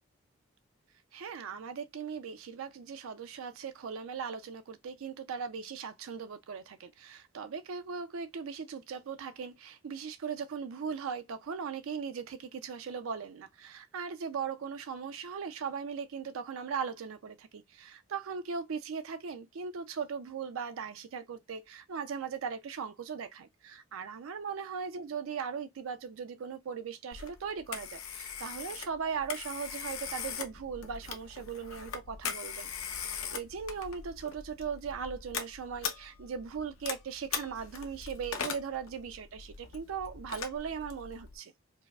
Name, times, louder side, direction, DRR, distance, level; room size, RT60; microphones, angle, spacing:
voice 1, 1.1-41.5, right 6 dB, 80° right, 0.4 m, -39 dB
Telephone, 27.1-41.4, left 7 dB, 85° left, 0.7 m, -41 dB
4.6 x 2.0 x 2.3 m
head